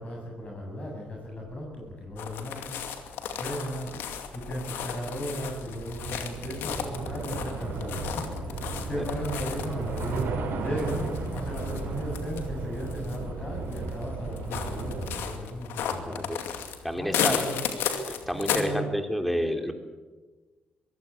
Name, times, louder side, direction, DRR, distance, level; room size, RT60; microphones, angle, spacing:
voice 1, 0.0-2.8 3.3-3.9 4.3-16.3 17.0-17.7 18.3-18.9, equal, 35° left, -1 dB, 7.6 m, -36 dB
Train / Subway metro underground, 1.8-1.9 2.1-15.1, right 3 dB, 75° right, 5.4 m, -35 dB
sound 1, 2.2-18.6, left 8 dB, 80° left, 2.4 m, -35 dB
voice 2, 16.0-16.4 16.8-17.4 18.1-19.7, equal, ahead, 6 dB, 3.4 m, -29 dB
22.0 x 16.5 x 8.4 m, 1.3 s
supercardioid pair, 65°, 4 cm